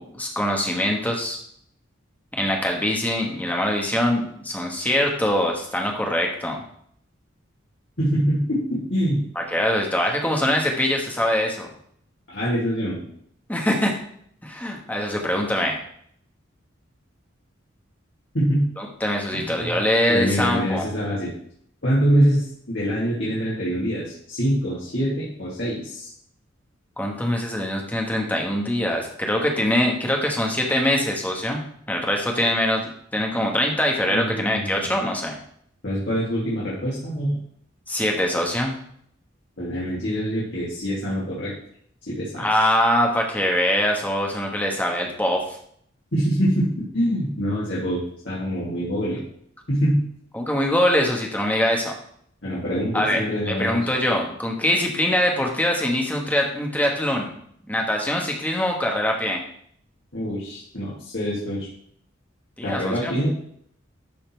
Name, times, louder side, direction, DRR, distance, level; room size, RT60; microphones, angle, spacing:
voice 1, 0.0-1.4 2.3-6.6 9.3-11.7 13.5-14.0 14.4-15.8 18.8-20.9 27.0-31.6 31.9-35.4 37.9-38.7 42.4-45.4 50.3-51.9 52.9-57.3 57.7-59.4 62.6-63.1, left 1 dB, 10° left, 1 dB, 1.4 m, -23 dB
voice 2, 8.0-9.2 12.3-13.0 18.3-18.6 19.3-19.8 20.1-21.3 21.8-26.1 34.1-34.8 35.8-37.4 39.6-41.5 42.1-42.5 46.1-49.2 49.7-50.0 52.4-53.9 60.1-61.7 62.6-63.3, equal, 60° left, -8 dB, 2.5 m, -24 dB
12.0 x 4.2 x 4.6 m, 0.65 s
head